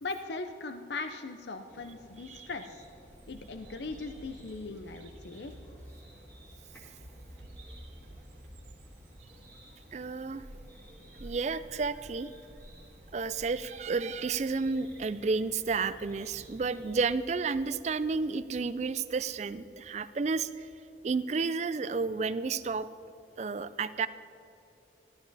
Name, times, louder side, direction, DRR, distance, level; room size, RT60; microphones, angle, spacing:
voice 1, 0.0-2.8 3.3-5.5, left 3 dB, 65° left, 8 dB, 0.6 m, -39 dB
sound 1, 1.7-16.9, equal, 10° left, 2.0 m, -55 dB
Bird vocalization bird call bird song, 2.7-20.8, right 1 dB, 90° right, 1.5 m, -54 dB
voice 2, 9.9-10.4 11.2-12.3 13.1-20.7 21.0-22.9 23.4-24.1, right 4 dB, 35° right, 14 dB, 0.3 m, -31 dB
13.0 x 12.0 x 4.1 m, 2.9 s
head